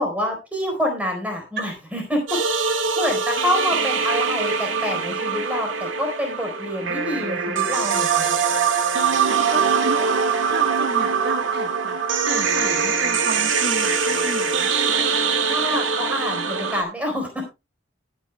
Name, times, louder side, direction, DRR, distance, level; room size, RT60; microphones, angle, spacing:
voice 1, 0.0-2.4 2.9-8.4 15.4-17.4, equal, 5° right, 2 dB, 4.2 m, -27 dB
sound 1, 2.3-16.8, right 5 dB, 90° right, 1.7 m, -22 dB
voice 2, 8.6-10.1 10.5-14.7 15.7-15.8, right 2 dB, 55° right, 5 dB, 1.5 m, -33 dB
19.5 x 9.6 x 2.2 m, 0.26 s
head